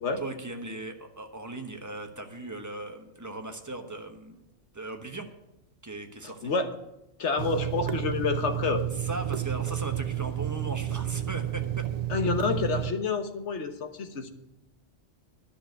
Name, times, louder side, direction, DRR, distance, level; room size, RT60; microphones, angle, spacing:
voice 1, 0.2-4.4 4.7-5.3 5.8-6.5 8.9-11.8, right 2 dB, 15° right, 5 dB, 1.1 m, -38 dB
voice 2, 6.2-6.7 7.2-8.9 12.1-14.3, left 4 dB, 85° left, 7 dB, 1.5 m, -28 dB
Water tap faucet / Sink (filling or washing), 7.4-12.9, right 11 dB, 55° right, 0.4 m, -31 dB
11.0 x 6.8 x 9.2 m, 0.90 s
omnidirectional pair, 1.2 m